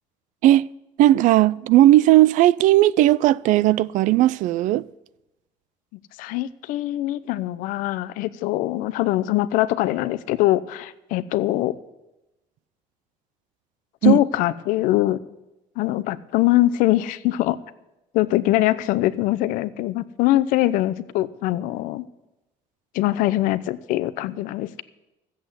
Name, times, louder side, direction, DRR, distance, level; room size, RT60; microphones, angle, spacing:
voice 1, 1.0-4.8 14.0-14.2, right 15 dB, 70° right, 0.4 m, -16 dB
voice 2, 6.2-11.7 14.0-15.2 15.8-17.6 18.1-22.1 22.9-24.8, left 15 dB, 85° left, 0.7 m, -22 dB
13.5 x 8.1 x 8.1 m
cardioid pair, 110°, 13 cm